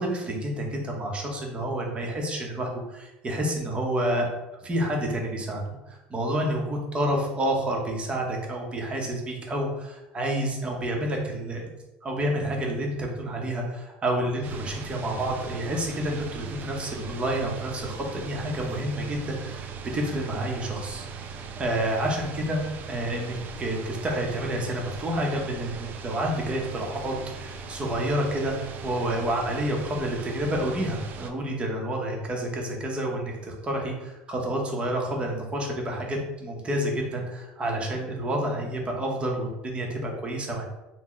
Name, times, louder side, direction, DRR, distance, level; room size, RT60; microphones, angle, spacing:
voice 1, 0.0-4.3 4.6-11.6 12.0-21.1 21.6-22.6 22.9-40.6, right 1 dB, 25° right, 1 dB, 0.7 m, -29 dB
sound 1, 14.4-31.3, right 5 dB, 50° right, 0.3 m, -39 dB
2.8 x 2.0 x 3.8 m, 1.0 s
supercardioid pair, 105°, 4 cm